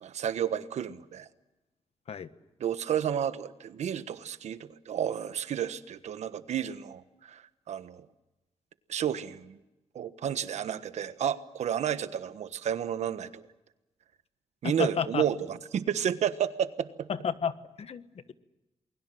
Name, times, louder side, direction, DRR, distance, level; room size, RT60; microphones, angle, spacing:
voice 1, 0.0-1.3 2.6-8.1 8.9-9.6 9.9-13.4 14.6-17.1, right 9 dB, 85° right, 12 dB, 1.3 m, -31 dB
voice 2, 14.6-15.2 17.1-18.3, left 7 dB, 65° left, 12 dB, 1.3 m, -32 dB
28.5 x 21.5 x 7.7 m, 1.0 s
cardioid pair, 90°, 11 cm